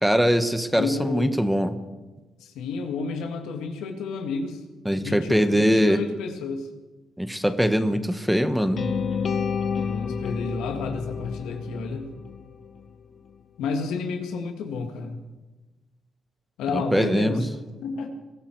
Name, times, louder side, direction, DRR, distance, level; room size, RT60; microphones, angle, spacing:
voice 1, 0.0-1.8 4.8-6.0 7.2-8.9 16.7-17.5, equal, 5° right, 10 dB, 1.2 m, -22 dB
voice 2, 0.7-1.4 2.4-4.6 5.0-6.7 9.8-12.1 13.6-15.2 16.6-17.5 17.8-18.1, left 4 dB, 90° left, 5 dB, 2.0 m, -30 dB
sound 1, 8.8-12.8, left 6 dB, 50° left, 1.1 m, -30 dB
22.0 x 13.5 x 4.7 m, 1.2 s
cardioid pair, 90°, 0 cm